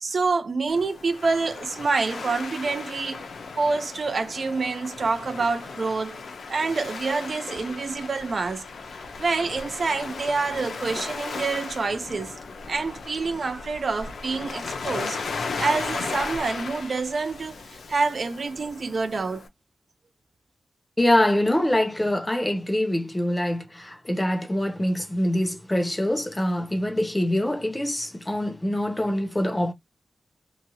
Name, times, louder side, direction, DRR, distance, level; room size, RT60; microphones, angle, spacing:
voice 1, 0.0-3.3 3.6-6.2 6.5-8.6 9.2-12.3 12.7-15.2 15.6-19.5, right 4 dB, 50° right, 0.4 m, -27 dB
Waves surf, 0.7-19.5, left 4 dB, 80° left, 0.6 m, -36 dB
voice 2, 21.0-29.7, left 1 dB, 15° left, 0.6 m, -24 dB
2.9 x 2.4 x 2.7 m
wide cardioid pair, 120°, 0 cm